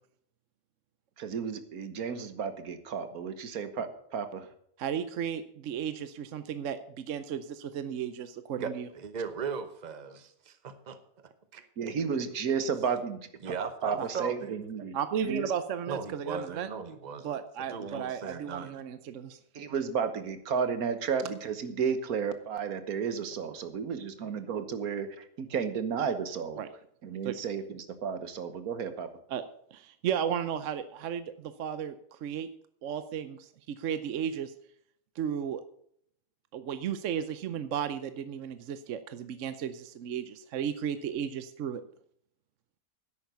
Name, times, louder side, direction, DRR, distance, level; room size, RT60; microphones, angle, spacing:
voice 1, 1.2-4.5 11.8-13.3 13.8-14.9 15.2-15.5 19.5-26.6 27.0-29.1, right 6 dB, 90° right, 10 dB, 1.6 m, -32 dB
voice 2, 4.8-8.9 14.0-14.1 14.9-16.7 17.2-19.4 26.6-26.7 27.2-27.4 29.3-29.4 29.7-32.5 32.8-34.5 35.2-35.6 36.5-41.8, right 8 dB, 65° right, 11 dB, 1.0 m, -34 dB
voice 3, 8.9-11.0 11.5-11.7 13.4-14.5 15.9-18.8, right 6 dB, 35° right, 10 dB, 1.0 m, -38 dB
10.5 x 8.7 x 6.9 m, 0.68 s
omnidirectional pair, 1.5 m